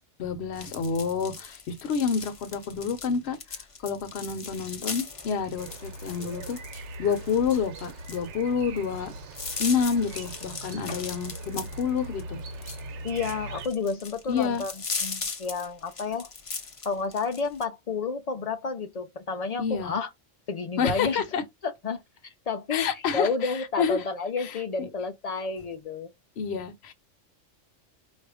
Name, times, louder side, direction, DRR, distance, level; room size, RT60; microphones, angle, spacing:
voice 1, 0.2-3.4 3.8-6.6 7.0-9.1 9.6-12.4 14.3-14.6 19.6-19.9 20.8-21.4 22.7-24.0 24.4-24.9 26.4-26.9, left 6 dB, 60° left, 0.9 m, -28 dB
sound 1, 0.6-17.6, left 4 dB, 35° left, 0.6 m, -38 dB
sound 2, 5.6-13.7, right 2 dB, 65° right, 0.9 m, -41 dB
voice 2, 13.0-14.7 15.0-16.3 16.8-20.1 20.5-21.2 21.6-26.1, left 4 dB, 90° left, 0.3 m, -30 dB
4.3 x 2.4 x 4.8 m
omnidirectional pair, 1.3 m